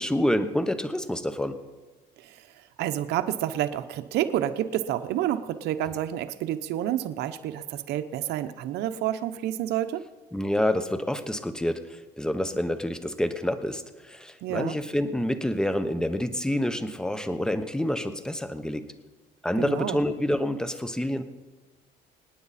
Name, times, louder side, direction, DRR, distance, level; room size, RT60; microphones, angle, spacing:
voice 1, 0.0-1.6 10.3-18.8 19.4-21.2, left 1 dB, 5° left, 10 dB, 1.0 m, -28 dB
voice 2, 2.8-10.0 14.4-14.8 19.6-20.0, right 12 dB, 85° right, 9 dB, 0.8 m, -29 dB
26.0 x 9.4 x 4.2 m, 1.3 s
cardioid pair, 110°, 17 cm